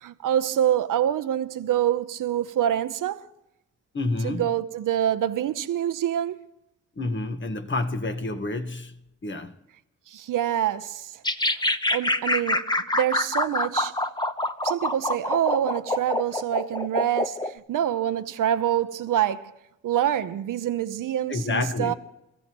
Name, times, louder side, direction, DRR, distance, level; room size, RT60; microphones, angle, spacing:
voice 1, 0.0-3.3 4.2-6.4 10.1-11.1 11.9-13.9 14.6-19.5 19.8-21.9, right 10 dB, 85° right, 0.8 m, -26 dB
voice 2, 3.9-4.5 7.0-8.9 9.2-9.5 21.3-21.9, left 2 dB, 35° left, 1.4 m, -28 dB
sound 1, 11.2-17.5, left 2 dB, 15° left, 0.9 m, -26 dB
29.5 x 14.0 x 3.1 m
cardioid pair, 70°, 31 cm